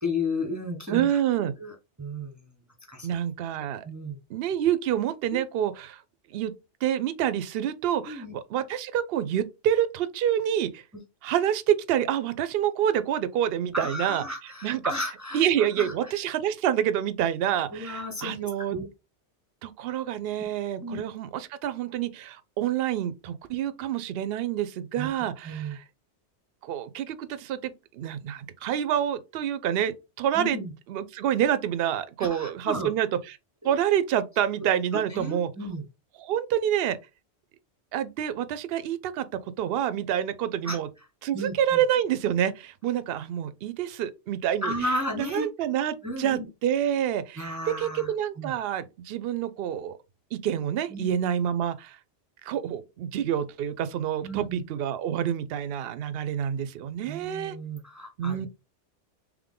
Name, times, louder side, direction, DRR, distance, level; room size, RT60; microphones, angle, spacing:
voice 1, 0.0-2.4 2.9-3.1 3.8-4.2 5.3-5.4 8.1-8.4 10.9-11.0 13.7-16.2 17.7-18.8 20.8-21.0 25.0-25.1 25.4-25.8 30.3-30.7 32.2-32.9 34.9-35.8 40.6-40.8 41.3-41.8 44.6-45.5 46.0-46.5 47.4-48.5 50.9-51.1 54.2-54.6 57.0-58.5, left 1 dB, 15° right, 0.7 m, -34 dB
voice 2, 0.9-1.5 3.0-3.8 4.3-6.0 6.3-6.5 6.8-10.8 11.2-14.2 14.6-14.8 15.3-18.8 19.6-25.8 26.6-30.6 30.9-33.1 33.6-35.5 36.2-37.0 37.9-39.3 39.6-40.9 41.2-44.7 45.2-50.0 50.3-52.0 52.4-57.5 58.2-58.5, right 10 dB, 65° right, 0.7 m, -27 dB
3.6 x 3.2 x 3.6 m
omnidirectional pair, 1.2 m